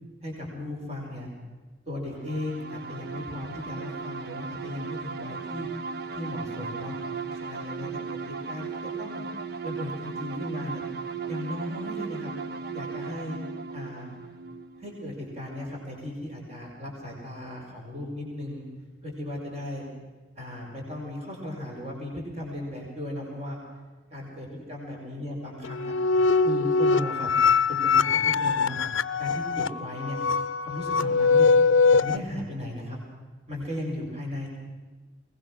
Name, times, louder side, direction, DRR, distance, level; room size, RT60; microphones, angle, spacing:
voice 1, 0.2-1.3 1.9-5.7 6.1-6.9 7.3-9.2 9.6-10.8 11.3-12.3 12.7-13.4 13.7-14.1 14.8-18.6 19.0-19.9 20.4-23.6 24.1-25.9 26.4-27.3 27.7-28.8 29.2-30.2 30.6-31.5 31.9-33.0 33.5-34.5, left 1 dB, 30° right, -2 dB, 5.5 m, -36 dB
sound 1, 2.2-15.7, right 5 dB, 50° right, 0.9 m, -37 dB
sound 2, 25.6-32.2, left 4 dB, 70° left, 0.6 m, -22 dB
22.5 x 20.0 x 6.2 m, 1.4 s
head